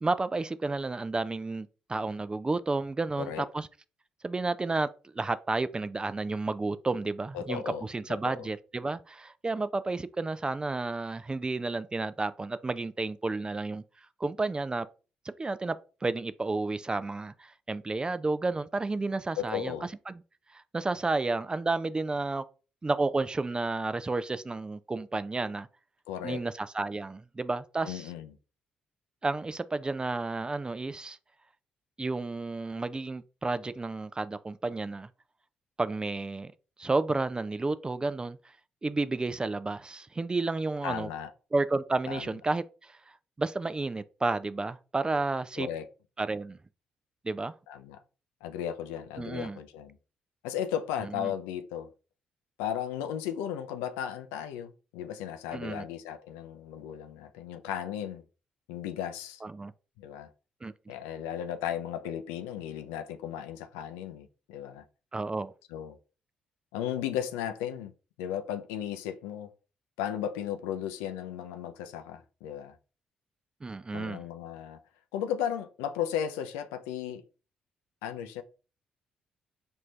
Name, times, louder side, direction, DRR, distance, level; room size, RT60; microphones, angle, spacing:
voice 1, 0.0-3.7 4.2-4.9 5.1-13.8 14.2-14.9 15.3-19.7 20.1-20.2 20.5-22.5 22.8-25.7 26.2-28.1 29.2-31.2 32.0-35.1 35.8-36.5 36.8-38.4 38.8-41.1 41.5-43.0 43.4-45.7 46.2-46.6 47.2-47.5 49.2-49.6 51.1-51.3 55.5-55.8 59.4-59.7 60.6-60.9 65.1-65.5 73.6-74.2, right 3 dB, 25° right, 0.4 m, -31 dB
voice 2, 7.3-7.8 8.2-8.5 19.4-19.9 26.1-26.4 27.8-28.3 40.8-41.3 42.1-42.3 45.6-45.9 47.7-48.0 48.4-50.0 50.4-51.9 52.6-58.2 58.7-59.4 60.0-60.3 60.9-64.8 65.7-66.0 66.7-67.9 68.2-69.5 70.0-72.7 73.9-74.8 75.1-77.2 78.0-78.4, left 9 dB, 80° left, 0.4 m, -35 dB
4.4 x 2.5 x 3.2 m
hypercardioid pair, 45°, 4 cm